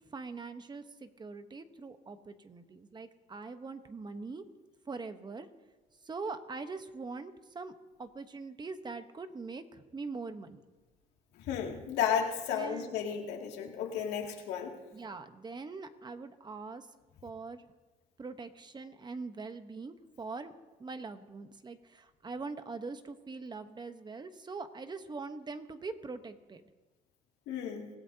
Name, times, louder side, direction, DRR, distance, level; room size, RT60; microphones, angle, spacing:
voice 1, 0.1-4.4 4.9-5.5 6.0-7.7 8.0-10.6 12.5-12.9 14.9-16.8 17.2-17.6 18.2-20.5 20.8-26.6, right 4 dB, 25° right, 9 dB, 1.1 m, -42 dB
voice 2, 11.4-14.8 27.5-27.9, left 8 dB, 90° left, 0 dB, 2.5 m, -33 dB
25.5 x 16.5 x 2.9 m, 1.3 s
cardioid pair, 110°, 17 cm